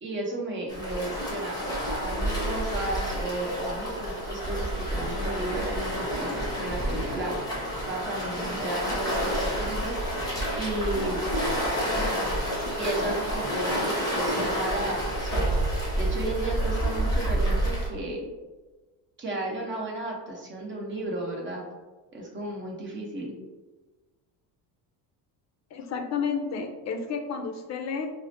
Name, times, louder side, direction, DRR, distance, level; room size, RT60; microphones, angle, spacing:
voice 1, 0.0-7.3 7.9-10.2 10.6-11.2 12.8-15.5 15.9-18.3 19.2-21.6 22.1-23.3, right 2 dB, 30° right, -2 dB, 0.8 m, -34 dB
Waves surf, 0.7-17.9, right 1 dB, 10° left, 1.1 m, -29 dB
voice 2, 25.7-28.1, left 6 dB, 40° left, 5 dB, 0.5 m, -31 dB
4.7 x 2.1 x 2.6 m, 1.2 s
cardioid pair, 125°, 41 cm